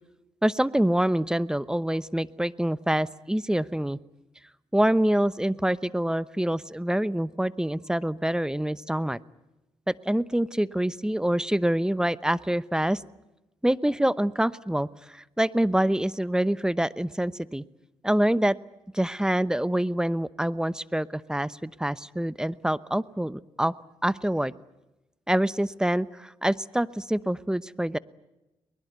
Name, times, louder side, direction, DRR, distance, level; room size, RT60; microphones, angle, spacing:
voice 1, 0.4-4.0 4.7-9.2 9.9-13.0 13.6-17.6 18.0-18.6 18.9-23.7 24.0-24.5 25.3-28.0, right 1 dB, 5° right, 17 dB, 0.9 m, -26 dB
23.0 x 21.0 x 9.4 m, 1.0 s
supercardioid pair, 50°, 11 cm